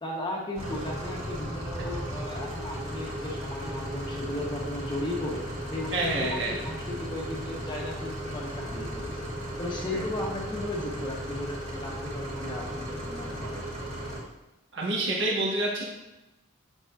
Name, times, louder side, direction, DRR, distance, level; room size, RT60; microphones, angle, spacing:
voice 1, 0.0-13.7, left 1 dB, 20° left, -2 dB, 1.2 m, -36 dB
sound 1, 0.5-14.2, equal, 30° right, 2.6 m, -35 dB
voice 2, 5.9-6.5 9.9-10.0 14.7-15.9, right 2 dB, 60° right, -3 dB, 1.6 m, -28 dB
9.1 x 7.5 x 2.7 m, 0.96 s
head